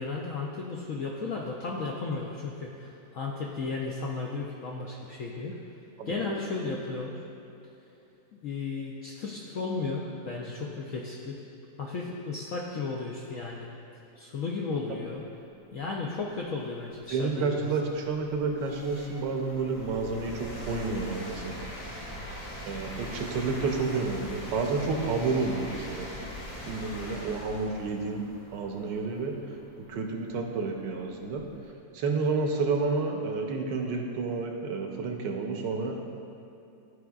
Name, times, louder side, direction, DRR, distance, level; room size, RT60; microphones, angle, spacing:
voice 1, 0.0-5.6 6.1-7.2 8.3-11.4 11.8-13.7 14.2-15.2 15.7-17.7, left 4 dB, 75° left, -2 dB, 0.7 m, -34 dB
sound 1, 16.2-16.3 16.9-31.6, left 1 dB, 90° left, 2.2 m, -42 dB
voice 2, 17.1-21.7 22.7-26.1 26.6-28.2 28.5-29.4 29.9-31.4 31.9-36.1, right 4 dB, 75° right, 2 dB, 1.3 m, -30 dB
12.5 x 4.7 x 2.3 m, 2.8 s
omnidirectional pair, 2.0 m